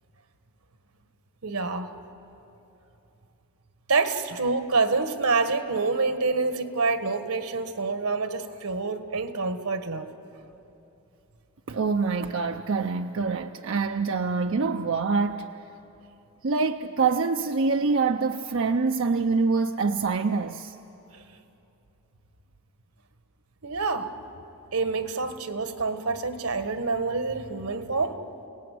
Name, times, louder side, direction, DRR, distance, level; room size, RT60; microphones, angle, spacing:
voice 1, 1.4-1.9 3.9-10.1 21.1-21.2 23.6-24.1 24.7-28.2, right 4 dB, 90° right, 9 dB, 1.6 m, -27 dB
voice 2, 11.7-15.5 16.4-20.8, right 4 dB, 60° right, 6 dB, 0.6 m, -25 dB
29.5 x 18.5 x 9.4 m, 3.0 s
head